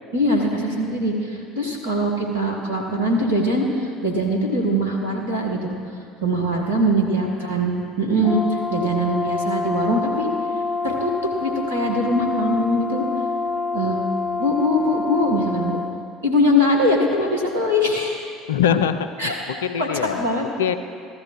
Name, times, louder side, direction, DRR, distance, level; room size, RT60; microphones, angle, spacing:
voice 1, 0.1-5.7 6.2-10.3 10.8-11.1 11.4-13.0 13.7-14.0 14.4-15.8 16.2-18.4 19.2-19.3 19.8-19.9 20.2-20.4, equal, 85° right, -1 dB, 1.6 m, -22 dB
voice 2, 6.7-7.1 18.5-20.8, left 8 dB, 75° left, 10 dB, 0.5 m, -24 dB
Brass instrument, 8.2-16.0, left 4 dB, 20° left, 0.5 m, -27 dB
15.0 x 12.5 x 3.2 m, 2.3 s
figure-of-eight pair, 60°, 0 cm